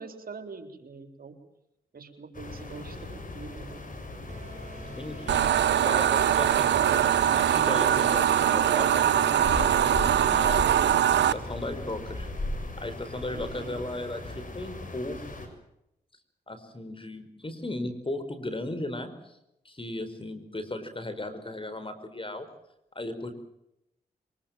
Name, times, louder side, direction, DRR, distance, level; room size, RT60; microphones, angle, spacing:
voice 1, 0.0-1.4 1.9-3.9 13.3-13.8, right 4 dB, 55° right, 7 dB, 3.9 m, -44 dB
sound 1, 2.3-15.5, left 2 dB, 50° left, 6.9 m, -38 dB
sound 2, 4.3-10.2, right 2 dB, 40° right, 7.8 m, -48 dB
voice 2, 5.0-5.4 5.8-10.6 11.2-12.3 12.8-15.2 16.5-19.3 19.6-22.5 22.9-23.3, left 1 dB, 30° left, 10 dB, 4.9 m, -36 dB
sound 3, 5.3-11.3, right 10 dB, 80° right, 1.0 m, -22 dB
23.5 x 21.5 x 7.5 m, 0.83 s
supercardioid pair, 50°, 18 cm